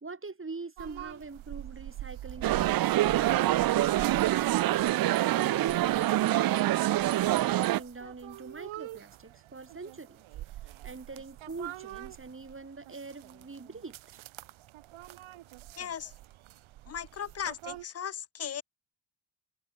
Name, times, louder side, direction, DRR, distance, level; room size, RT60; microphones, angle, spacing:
voice 1, 0.0-4.8 5.3-10.2 10.6-14.0, right 3 dB, 25° right, 3.0 m, -44 dB
sound 1, 0.8-17.8, right 15 dB, 85° right, 1.4 m, -45 dB
sound 2, 2.4-7.8, right 14 dB, 50° right, 0.4 m, -25 dB
voice 2, 15.8-16.1 16.9-18.6, left 8 dB, 35° left, 0.4 m, -37 dB
cardioid pair, 70°, 47 cm